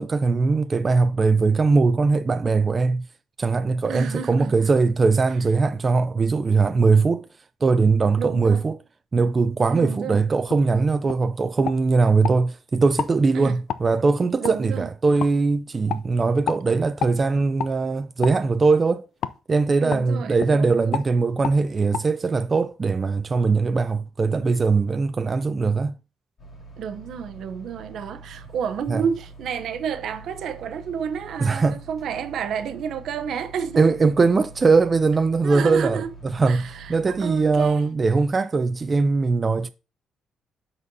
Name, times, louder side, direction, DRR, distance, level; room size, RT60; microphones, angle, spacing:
voice 1, 0.0-3.1 3.4-7.3 7.6-8.8 9.1-19.1 19.5-26.0 28.9-29.0 31.4-31.8 33.8-39.7, right 4 dB, 35° right, 0.4 m, -21 dB
voice 2, 3.9-4.5 8.2-8.6 9.7-10.2 13.3-13.6 14.4-14.9 19.8-21.0 26.8-34.1 35.4-36.1 36.4-37.8, right 7 dB, 70° right, 0.7 m, -30 dB
sound 1, 10.5-10.6 11.1-11.2 11.6-12.4 12.9-13.1 13.7-13.8 14.4-14.6 15.2-15.3 15.9-16.0 16.5-16.6 17.0-17.2 17.6-17.7 18.2-18.4 19.2-19.4 19.9-20.0 20.4-20.5 20.9-21.1 21.4-21.6 21.9-22.0, left 8 dB, 75° left, 0.5 m, -29 dB
sound 2, 26.4-37.7, right 2 dB, 45° left, 3.8 m, -45 dB
12.0 x 4.2 x 2.7 m
cardioid pair, 90°, 0 cm